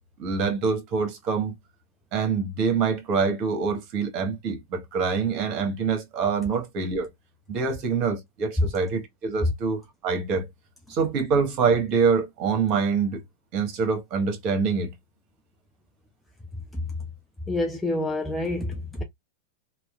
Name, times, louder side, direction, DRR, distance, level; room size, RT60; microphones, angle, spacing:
voice 1, 0.2-1.5 2.1-7.1 7.5-10.5 10.9-13.2 13.5-14.9, right 5 dB, 45° right, 1.0 m, -25 dB
voice 2, 17.5-19.0, left 1 dB, 5° left, 0.4 m, -28 dB
2.9 x 2.2 x 2.3 m
hypercardioid pair, 100°, 0 cm